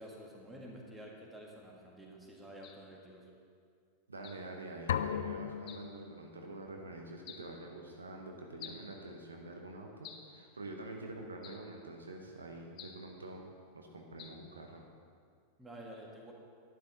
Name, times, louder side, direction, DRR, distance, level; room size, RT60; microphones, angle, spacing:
voice 1, 0.0-3.3 15.6-16.3, equal, 10° right, -1 dB, 1.9 m, -50 dB
sound 1, 2.6-2.9 4.2-4.5 5.7-5.9 7.3-7.5 8.6-8.9 10.0-10.4 11.4-11.7 12.8-13.1 14.2-14.5, left 8 dB, 35° left, 0.8 m, -51 dB
voice 2, 4.1-13.5 13.7-14.8, right 2 dB, 75° right, 2 dB, 1.0 m, -47 dB
sound 2, 4.9-6.7, left 8 dB, 60° left, 0.4 m, -37 dB
11.5 x 9.6 x 4.1 m, 2.2 s
figure-of-eight pair, 90°, 0 cm